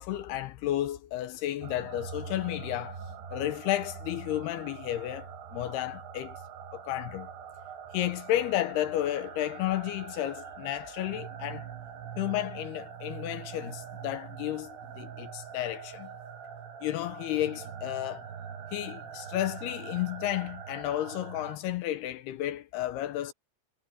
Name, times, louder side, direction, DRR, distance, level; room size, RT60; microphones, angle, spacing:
voice 1, 0.0-6.4 6.7-7.3 7.9-11.7 12.2-16.1 16.8-18.3 18.7-23.3, left 13 dB, 80° left, 2.6 m, -32 dB
sound 1, 1.6-21.6, right 7 dB, 70° right, 3.9 m, -43 dB
omnidirectional pair, 5.1 m